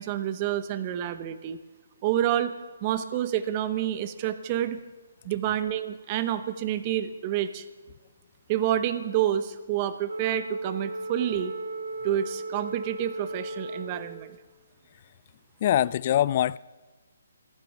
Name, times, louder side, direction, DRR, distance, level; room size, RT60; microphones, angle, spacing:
voice 1, 0.0-1.6 2.0-2.5 2.8-4.8 5.2-7.6 8.5-11.5 12.0-14.4, right 11 dB, 30° right, 0.8 m, -28 dB
Wind instrument woodwind instrument, 10.1-14.4, right 2 dB, 90° right, 5.1 m, -36 dB
voice 2, 15.6-16.6, left 11 dB, 40° left, 0.3 m, -23 dB
29.5 x 10.0 x 3.5 m
hypercardioid pair, 145°, 0 cm